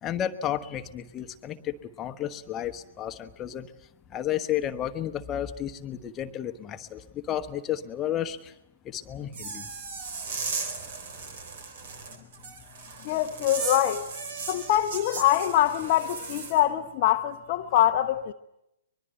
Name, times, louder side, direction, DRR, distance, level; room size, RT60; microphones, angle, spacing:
voice 1, 0.0-3.7 4.1-8.5 8.8-9.7, left 10 dB, 20° left, 1.2 m, -32 dB
sound 1, 9.3-16.6, right 5 dB, 50° right, 3.9 m, -36 dB
voice 2, 13.0-14.1 14.5-18.3, left 13 dB, 35° left, 0.8 m, -24 dB
24.0 x 22.0 x 8.0 m
figure-of-eight pair, 120°, 0 cm